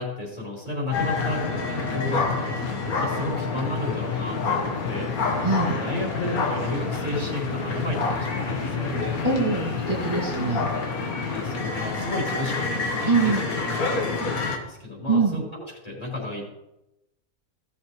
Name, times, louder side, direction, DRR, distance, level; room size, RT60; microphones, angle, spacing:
voice 1, 0.0-2.3 2.6-5.1 5.7-9.0 11.3-13.4 14.4-16.4, left 2 dB, 25° left, -4 dB, 3.6 m, -32 dB
sound 1, 0.9-14.6, left 4 dB, 75° left, 1.9 m, -27 dB
voice 2, 5.4-5.8 9.2-10.6 13.1-13.4 15.1-15.4, right 3 dB, 25° right, -7 dB, 2.1 m, -23 dB
16.5 x 7.3 x 3.1 m, 0.90 s
omnidirectional pair, 1.5 m